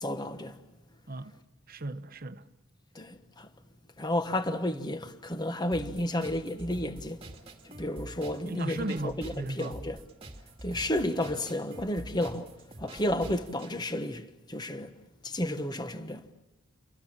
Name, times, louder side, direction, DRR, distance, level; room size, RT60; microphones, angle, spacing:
voice 1, 0.0-0.6 2.9-3.5 4.0-7.2 7.6-10.0 10.6-12.5 12.8-14.9 15.2-16.2, left 1 dB, 20° left, 1.1 m, -32 dB
voice 2, 1.1-1.4 1.7-2.5 8.4-9.8, right 2 dB, 40° right, 1.0 m, -36 dB
sound 1, 5.7-13.7, right 1 dB, 25° right, 2.2 m, -46 dB
29.5 x 24.0 x 7.4 m
head